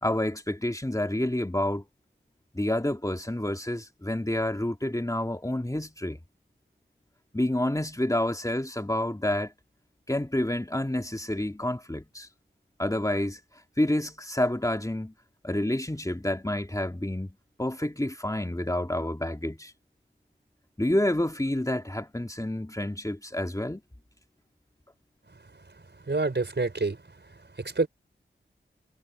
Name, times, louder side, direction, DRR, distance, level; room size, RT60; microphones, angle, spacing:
voice 1, 0.0-1.8 2.5-6.2 7.3-9.5 10.1-12.3 12.8-13.4 13.8-15.1 15.4-19.7 20.8-23.8, left 1 dB, 15° left, 2.3 m, -28 dB
voice 2, 26.1-27.0 27.6-27.9, right 3 dB, 60° right, 4.8 m, -27 dB
cardioid pair, 45°, 21 cm